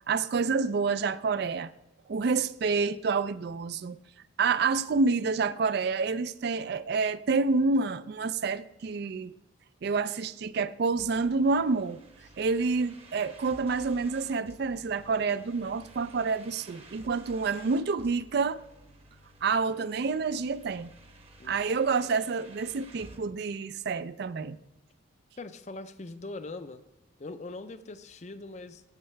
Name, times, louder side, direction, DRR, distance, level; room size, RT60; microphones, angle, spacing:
voice 1, 0.1-1.7 2.1-4.0 4.4-9.3 9.8-12.0 12.4-18.6 19.4-20.9 21.4-24.6, right 4 dB, 50° right, 0.3 m, -28 dB
sound 1, 11.0-23.2, right 2 dB, 30° right, 0.9 m, -53 dB
voice 2, 25.4-26.8 27.2-28.8, left 2 dB, 35° left, 0.5 m, -41 dB
15.0 x 5.6 x 3.2 m
head